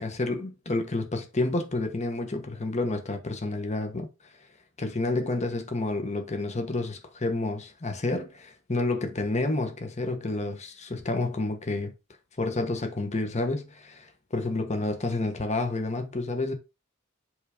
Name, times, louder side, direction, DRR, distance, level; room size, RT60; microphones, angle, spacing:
voice 1, 0.0-4.1 4.8-11.9 12.4-16.5, left 2 dB, 35° left, 1.2 m, -29 dB
7.8 x 3.6 x 5.0 m
head